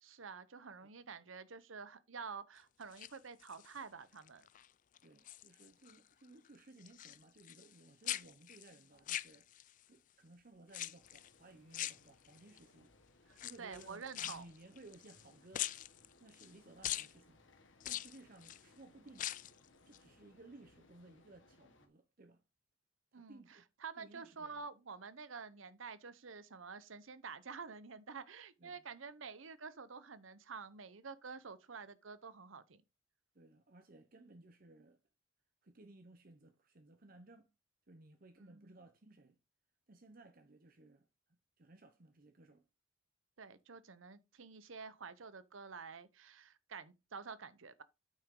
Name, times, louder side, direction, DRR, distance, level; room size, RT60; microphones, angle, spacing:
voice 1, 0.0-4.5 13.3-14.5 23.1-23.4 23.8-32.8 38.4-38.7 43.4-47.8, right 5 dB, 80° right, 0.8 m, -49 dB
sound 1, 2.8-3.8 4.3-4.7 5.0-6.0 6.2-9.8 10.7-11.3 11.7-12.6 13.3-15.3 15.5-16.5 16.8-17.1 17.8-18.6 19.1-19.6 19.9-20.0, left 13 dB, 40° left, 0.3 m, -43 dB
voice 2, 5.0-9.5 9.8-12.9 13.4-15.7 16.2-17.4 17.8-19.3 19.9-22.4 23.1-23.7 24.0-24.7 28.6-28.8 33.3-35.0 35.6-37.5 37.9-39.4 39.9-42.7, right 2 dB, 45° right, 0.9 m, -59 dB
sound 2, 11.0-21.9, left 2 dB, 70° left, 1.6 m, -67 dB
8.8 x 5.9 x 3.8 m
head